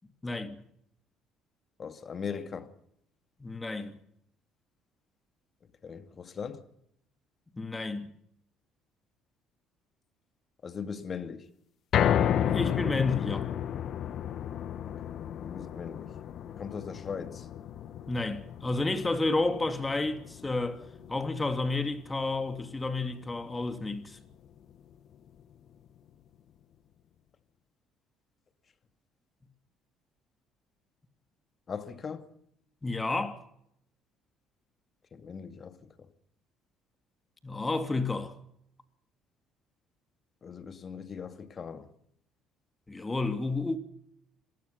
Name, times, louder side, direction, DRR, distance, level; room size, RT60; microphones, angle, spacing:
voice 1, 0.2-0.6 3.4-3.9 7.5-8.1 12.3-13.5 18.1-20.8 21.1-24.2 32.8-33.4 37.4-38.4 42.9-43.8, left 3 dB, 20° left, 2.9 m, -31 dB
voice 2, 1.8-2.7 5.8-6.6 10.6-11.5 14.9-15.0 15.4-16.1 16.4-17.5 31.7-32.3 35.1-35.9 40.4-41.9, left 6 dB, 40° left, 2.3 m, -39 dB
sound 1, 11.9-24.2 24.6-24.7 25.1-25.2, left 9 dB, 60° left, 1.3 m, -33 dB
26.0 x 19.0 x 5.6 m
hypercardioid pair, 60°, 0 cm